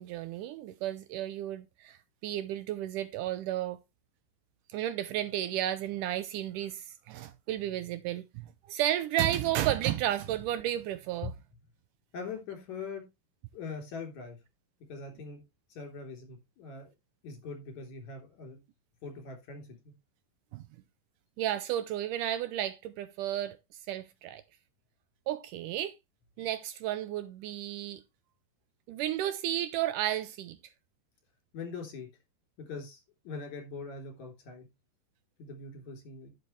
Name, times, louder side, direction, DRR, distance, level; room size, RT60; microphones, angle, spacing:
voice 1, 0.0-2.0 2.2-3.8 4.7-8.3 8.7-11.3 20.5-20.6 21.4-23.6 23.9-24.4 25.3-25.9 26.4-28.0 28.9-30.6, right 12 dB, 80° right, 2.0 m, -32 dB
voice 2, 12.1-13.0 13.5-14.4 14.9-15.4 15.7-16.9 17.2-18.6 19.0-19.9 31.5-32.1 32.6-34.7 35.4-36.3, left 4 dB, 55° left, 4.8 m, -42 dB
11.0 x 8.4 x 3.2 m
omnidirectional pair, 4.0 m